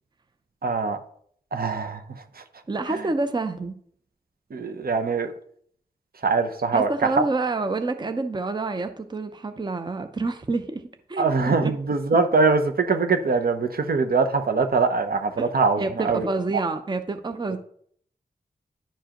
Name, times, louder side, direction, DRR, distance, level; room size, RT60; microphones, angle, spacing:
voice 1, 0.6-1.0 1.5-2.0 4.5-5.3 6.2-7.1 11.2-16.2, right 4 dB, 60° right, 0.7 m, -22 dB
voice 2, 2.7-3.7 6.7-10.8 11.1-11.7 15.4-15.5 15.8-17.6, right 3 dB, 25° right, 0.6 m, -28 dB
10.0 x 4.6 x 3.0 m
cardioid pair, 60°, 17 cm